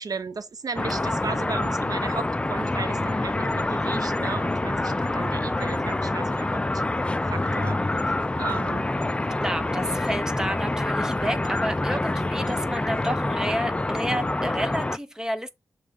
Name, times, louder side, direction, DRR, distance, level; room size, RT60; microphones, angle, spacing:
voice 1, 0.0-6.8 7.3-7.8 8.1-8.9, right 4 dB, 55° right, 0.6 m, -35 dB
sound 1, 0.8-15.0, left 2 dB, 15° left, 0.3 m, -26 dB
voice 2, 9.4-15.5, equal, 10° right, 0.8 m, -30 dB
6.4 x 3.3 x 5.1 m
wide cardioid pair, 125°, 8 cm